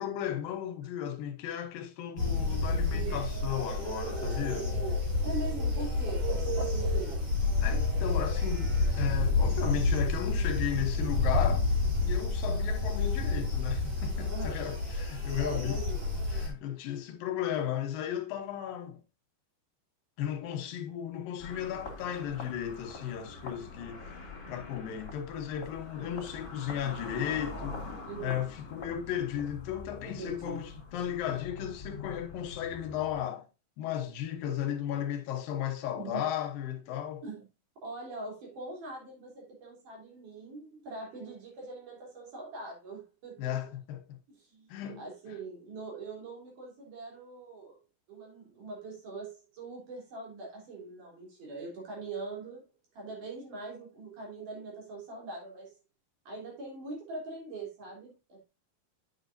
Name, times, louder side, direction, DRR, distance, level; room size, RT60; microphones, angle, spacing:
voice 1, 0.0-4.7 7.6-11.7 12.1-15.8 16.3-19.0 20.2-33.5 33.8-37.2 43.4-44.2 44.7-45.0, left 10 dB, 85° left, 2.8 m, -35 dB
sound 1, 2.2-16.5, left 3 dB, 35° right, 3.3 m, -29 dB
voice 2, 2.9-3.2 5.2-7.3 14.3-14.6 15.4-16.1 28.1-28.4 30.2-30.6 36.0-36.3 37.2-37.5 37.8-43.5 44.3-44.7 45.0-47.8 48.1-52.6 52.9-55.8 56.2-58.4, right 3 dB, 65° right, 5.0 m, -42 dB
sound 2, 21.4-33.2, left 3 dB, 35° left, 2.5 m, -44 dB
8.8 x 7.3 x 2.7 m
omnidirectional pair, 3.9 m